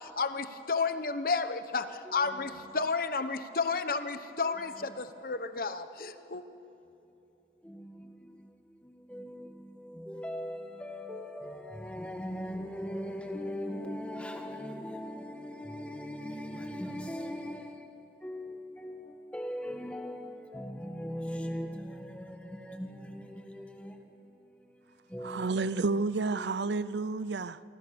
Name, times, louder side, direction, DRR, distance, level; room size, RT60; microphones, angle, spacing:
voice 1, 0.0-6.4, left 4 dB, 55° left, 1.0 m, -32 dB
voice 2, 2.0-2.4 4.9-5.0 7.6-24.3 24.6-25.8 26.3-26.5, equal, 5° left, 1.6 m, -40 dB
voice 3, 25.2-27.6, right 3 dB, 80° right, 0.6 m, -30 dB
28.0 x 24.5 x 7.0 m
head